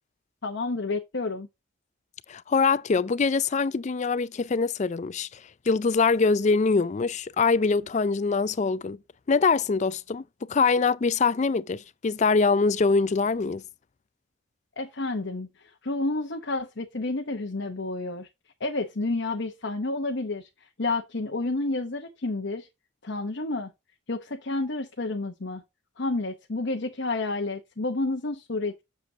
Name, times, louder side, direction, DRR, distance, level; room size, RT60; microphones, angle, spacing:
voice 1, 0.4-1.5 14.8-18.3 18.6-20.5 20.8-22.7 23.0-23.7 24.1-25.6 26.0-28.8, left 2 dB, 55° left, 0.9 m, -30 dB
voice 2, 2.3-5.3 5.7-9.0 9.3-10.2 10.5-13.6, left 4 dB, 35° left, 0.3 m, -23 dB
8.4 x 6.9 x 2.7 m
head